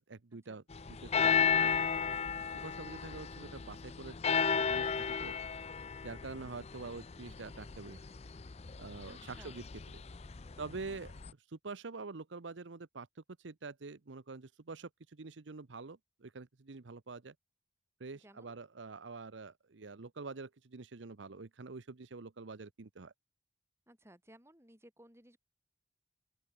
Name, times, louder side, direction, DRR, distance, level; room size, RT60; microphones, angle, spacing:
voice 1, 0.0-1.7 2.5-4.2 4.5-5.3 6.0-8.0 8.8-9.7 10.6-13.1 13.4-17.3 18.0-23.1, right 4 dB, 85° right, 0.8 m, -46 dB
sound 1, 0.7-11.3, left 6 dB, 35° left, 0.5 m, -34 dB
voice 2, 9.1-9.6 18.1-18.5 23.9-25.4, right 1 dB, 15° right, 5.5 m, -59 dB
open air
head